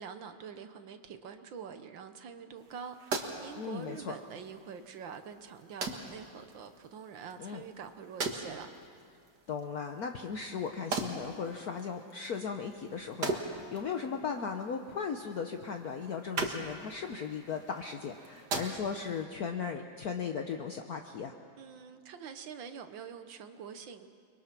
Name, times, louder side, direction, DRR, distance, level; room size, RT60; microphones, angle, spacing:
voice 1, 0.0-8.7 21.6-24.1, right 6 dB, 75° right, 8 dB, 1.7 m, -45 dB
sound 1, 2.6-19.2, right 3 dB, 55° right, 2.3 m, -41 dB
voice 2, 3.5-4.2 7.4-7.6 9.5-21.3, left 6 dB, 55° left, 4 dB, 1.3 m, -37 dB
29.0 x 22.5 x 6.0 m, 2.3 s
omnidirectional pair, 2.1 m